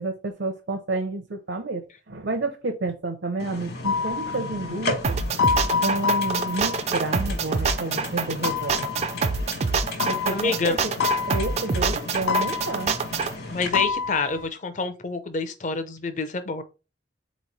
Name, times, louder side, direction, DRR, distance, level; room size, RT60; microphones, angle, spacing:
voice 1, 0.0-4.9 5.7-8.9 10.1-10.8 11.3-12.9, right 2 dB, 70° right, 0.7 m, -30 dB
sound 1, 3.4-13.7, left 2 dB, 55° left, 1.3 m, -35 dB
sound 2, 3.8-8.1 8.4-14.5, left 5 dB, 85° left, 0.3 m, -28 dB
sound 3, 5.0-13.3, right 5 dB, 35° right, 0.3 m, -26 dB
voice 2, 10.3-10.8 13.5-16.6, left 4 dB, 40° left, 0.6 m, -27 dB
4.1 x 3.1 x 4.0 m
head